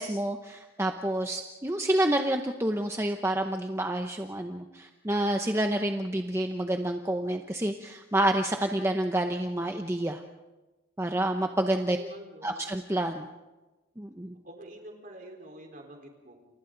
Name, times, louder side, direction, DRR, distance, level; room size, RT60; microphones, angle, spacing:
voice 1, 0.0-10.2 11.0-12.0 12.4-13.3 14.0-14.4, right 1 dB, 15° right, 4 dB, 0.7 m, -28 dB
voice 2, 11.9-12.6 14.4-16.4, right 1 dB, 45° right, 2 dB, 4.1 m, -46 dB
29.0 x 29.0 x 3.9 m, 1.1 s
head